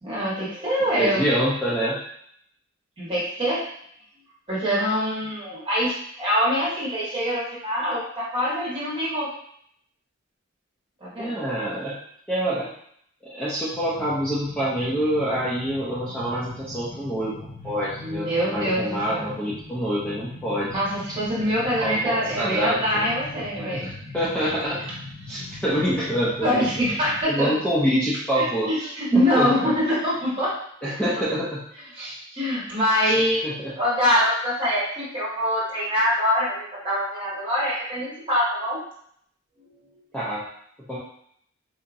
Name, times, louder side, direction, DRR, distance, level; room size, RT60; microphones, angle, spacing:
voice 1, 0.0-1.2 3.0-3.6 4.5-9.3 11.0-11.3 18.0-19.3 20.7-23.9 25.5-25.6 26.4-27.5 28.3-30.5 31.9-33.4 33.8-38.8, equal, 25° right, -8 dB, 1.5 m, -24 dB
voice 2, 1.0-2.0 11.2-12.0 12.3-12.7 13.2-20.8 21.8-23.1 23.7-24.9 25.3-26.6 27.3-29.5 30.8-31.6 33.0-33.7 40.1-40.4 40.9-41.0, equal, 5° left, -9 dB, 0.6 m, -26 dB
sound 1, 13.7-27.2, left 2 dB, 80° left, 1.5 m, -41 dB
3.9 x 2.8 x 2.6 m, 0.68 s
head